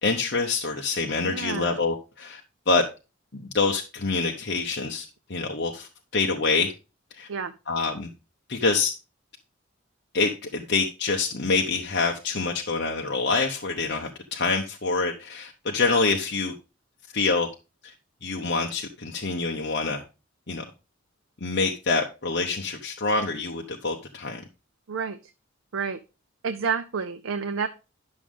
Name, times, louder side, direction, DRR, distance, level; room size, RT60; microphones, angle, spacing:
voice 1, 0.0-2.4 2.7-2.8 3.3-5.0 5.3-6.7 7.1-7.3 7.7-8.1 8.5-8.9 10.1-16.5 17.1-17.5 17.8-17.9 18.2-20.0 20.5-20.6 21.4-24.4, left 4 dB, 55° left, 0.9 m, -26 dB
voice 2, 1.2-1.8 7.3-7.5 24.9-25.2 25.7-26.0 26.4-27.7, right 5 dB, 80° right, 0.6 m, -29 dB
10.5 x 6.3 x 3.6 m
head